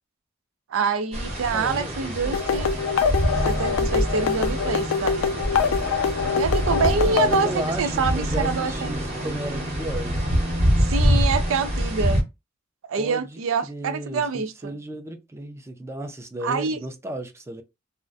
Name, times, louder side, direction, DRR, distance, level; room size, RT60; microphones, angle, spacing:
voice 1, 0.7-2.7 3.3-5.5 6.4-7.5 7.8-8.9 10.8-12.2 12.9-14.7 16.4-16.8, right 5 dB, 90° right, 0.4 m, -26 dB
sound 1, 1.1-12.2, equal, 35° right, 0.8 m, -25 dB
voice 2, 1.5-2.5 7.0-10.4 13.0-17.6, right 1 dB, 15° right, 0.3 m, -35 dB
sound 2, 2.3-7.5, left 6 dB, 85° left, 0.3 m, -24 dB
2.4 x 2.1 x 2.4 m
head